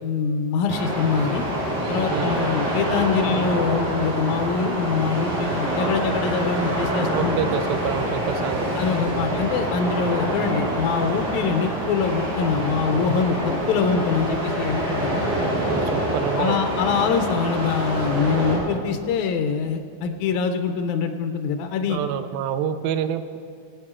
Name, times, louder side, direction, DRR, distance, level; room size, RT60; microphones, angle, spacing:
voice 1, 0.0-1.4 1.9-7.4 8.8-15.2 16.4-22.0, left 5 dB, 90° left, 7 dB, 1.6 m, -24 dB
sound 1, 0.7-18.6, right 1 dB, 65° right, 4.7 m, -26 dB
voice 2, 7.1-8.7 15.6-16.6 21.9-23.4, right 9 dB, 85° right, 10 dB, 2.4 m, -27 dB
sound 2, 13.2-18.9, left 2 dB, 55° left, 2.6 m, -38 dB
20.5 x 9.0 x 3.6 m, 2.2 s
omnidirectional pair, 4.2 m